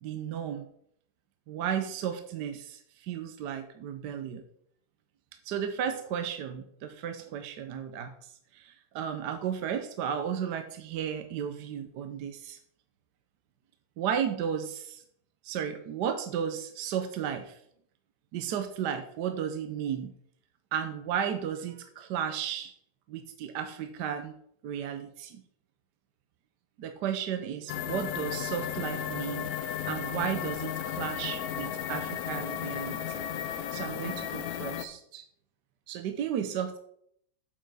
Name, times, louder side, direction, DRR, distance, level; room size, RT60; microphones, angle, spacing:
voice 1, 0.0-0.7 1.5-4.4 5.4-12.6 14.0-15.0 15.4-17.6 18.3-20.1 20.7-22.7 23.1-24.4 24.6-25.4 26.8-29.5 29.9-35.2 35.9-36.8, right 8 dB, 70° right, 7 dB, 1.2 m, -34 dB
sound 1, 27.7-34.9, left 10 dB, 65° left, 1.0 m, -34 dB
7.6 x 6.6 x 4.8 m, 0.69 s
omnidirectional pair, 2.1 m